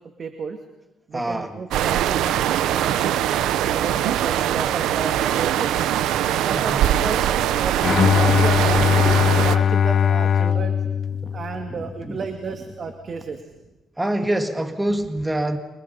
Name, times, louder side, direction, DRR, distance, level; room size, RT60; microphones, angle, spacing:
voice 1, 0.2-0.6 1.1-3.2 3.7-5.8 6.4-9.2 9.4-10.8 11.3-13.4, right 5 dB, 50° right, 5 dB, 2.4 m, -32 dB
voice 2, 1.1-1.6 6.6-6.8 11.2-11.4 11.8-12.2 14.0-15.6, right 1 dB, 10° right, 6 dB, 2.0 m, -26 dB
sound 1, 1.7-9.6, right 11 dB, 90° right, 1.0 m, -22 dB
Bowed string instrument, 7.8-12.0, left 8 dB, 55° left, 0.8 m, -20 dB
29.5 x 25.5 x 5.7 m, 1.0 s
cardioid pair, 90°, 0 cm